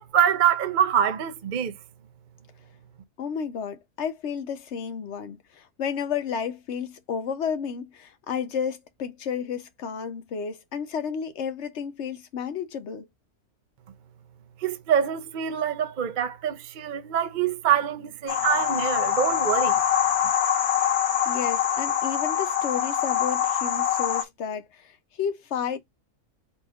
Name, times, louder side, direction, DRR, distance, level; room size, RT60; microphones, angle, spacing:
voice 1, 0.0-1.8 14.6-19.8, right 9 dB, 55° right, 0.5 m, -25 dB
voice 2, 3.2-13.1 21.2-25.8, left 7 dB, 55° left, 1.0 m, -32 dB
sound 1, 18.3-24.2, left 9 dB, 75° left, 1.5 m, -24 dB
4.2 x 2.5 x 4.7 m
omnidirectional pair, 1.6 m